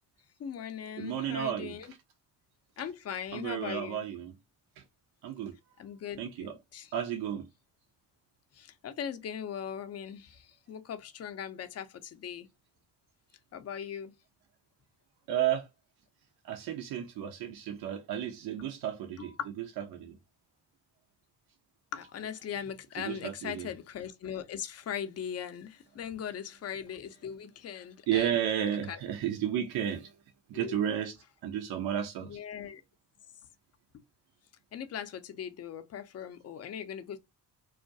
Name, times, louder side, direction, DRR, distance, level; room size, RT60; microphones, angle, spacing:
voice 1, 0.4-1.9 2.8-4.0 5.8-6.9 8.5-12.5 13.5-14.1 19.2-19.5 21.9-28.3 28.9-29.0 30.5-30.9 32.2-32.8 34.7-37.2, left 8 dB, 35° left, 0.5 m, -39 dB
voice 2, 1.0-1.7 3.3-4.3 4.8-4.9 5.2-5.5 6.2-6.6 6.9-7.4 15.3-15.7 16.4-19.3 19.6-20.2 23.0-23.7 28.1-30.1 30.5-31.2 31.4-32.4, right 10 dB, 55° right, 0.6 m, -32 dB
2.4 x 2.2 x 2.5 m
hypercardioid pair, 60°, 45 cm